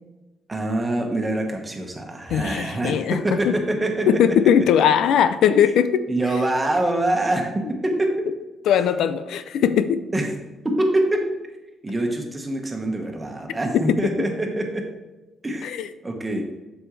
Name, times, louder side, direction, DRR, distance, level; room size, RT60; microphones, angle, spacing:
voice 1, 0.5-4.2 6.1-8.1 10.1-10.3 10.6-11.2 11.8-14.8 15.4-15.7 16.0-16.5, right 1 dB, 20° right, 2 dB, 1.4 m, -24 dB
voice 2, 2.3-3.5 4.1-5.9 8.7-10.0 13.7-14.1 15.6-15.9, left 8 dB, 80° left, 12 dB, 0.4 m, -19 dB
7.6 x 6.2 x 3.2 m, 1.1 s
cardioid pair, 90°, 0 cm